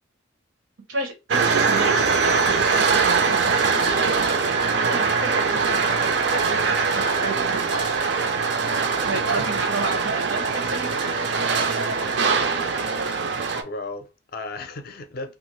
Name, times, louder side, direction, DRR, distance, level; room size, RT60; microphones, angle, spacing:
voice 1, 0.9-6.1 6.4-8.1 9.0-11.1, right 3 dB, 80° right, 0.9 m, -32 dB
sound 1, 1.3-13.6, right 4 dB, 55° right, 0.4 m, -22 dB
voice 2, 9.1-9.7 13.6-15.4, left 2 dB, 50° left, 0.5 m, -36 dB
2.9 x 2.5 x 3.0 m
head